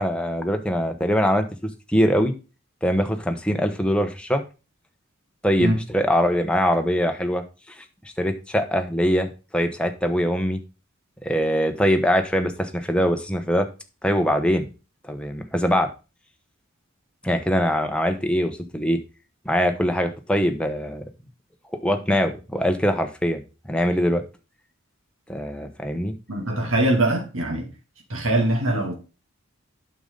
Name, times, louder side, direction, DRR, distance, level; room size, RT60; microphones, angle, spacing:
voice 1, 0.0-2.3 2.8-4.4 5.4-7.8 8.2-10.6 11.2-13.7 14.0-14.7 15.1-15.9 17.2-19.0 19.4-21.0 21.8-23.4 23.7-24.2 25.3-26.1, equal, 5° left, 1.0 m, -23 dB
voice 2, 26.3-27.7 28.1-28.9, right 1 dB, 75° right, 2.5 m, -22 dB
8.8 x 6.7 x 3.9 m
head